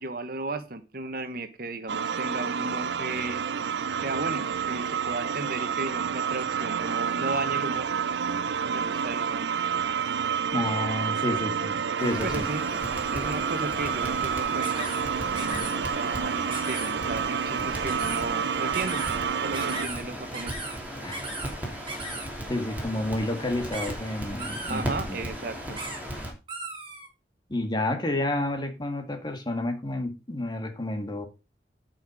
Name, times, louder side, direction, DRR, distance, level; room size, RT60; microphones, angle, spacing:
voice 1, 0.0-3.4 4.0-7.9 8.7-9.5 12.2-12.6 13.1-14.9 15.4-19.0 19.4-20.5 24.7-25.8, right 2 dB, 55° right, 1.3 m, -34 dB
sound 1, 1.9-19.9, right 7 dB, 80° right, 0.5 m, -29 dB
voice 2, 10.5-12.5 21.0-21.2 22.5-25.2 27.5-31.2, left 1 dB, 25° left, 2.1 m, -30 dB
Crackle, 12.0-26.3, equal, 10° right, 3.1 m, -37 dB
sound 2, 14.6-15.0 15.4-15.7 16.5-16.9 17.9-18.2 18.7-19.2 19.5-20.0 20.3-20.8 21.1-21.5 21.9-22.3 23.7-23.9 24.4-24.8 25.8-26.0 26.5-27.1, right 2 dB, 30° right, 4.9 m, -36 dB
11.5 x 5.8 x 5.1 m
head